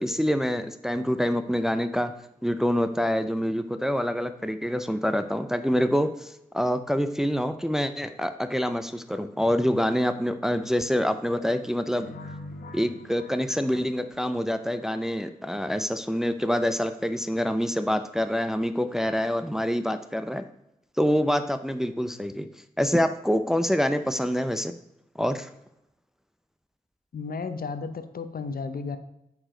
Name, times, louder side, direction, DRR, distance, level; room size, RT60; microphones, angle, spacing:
voice 1, 0.0-2.1 2.4-12.1 12.7-20.4 21.0-22.5 22.8-24.7 25.2-25.5, equal, 5° right, 9 dB, 0.6 m, -26 dB
sound 1, 12.0-14.9, left 2 dB, 90° left, 1.1 m, -44 dB
voice 2, 27.1-29.0, left 4 dB, 70° left, 11 dB, 0.8 m, -33 dB
8.7 x 4.8 x 5.1 m, 0.83 s
cardioid pair, 40°, 16 cm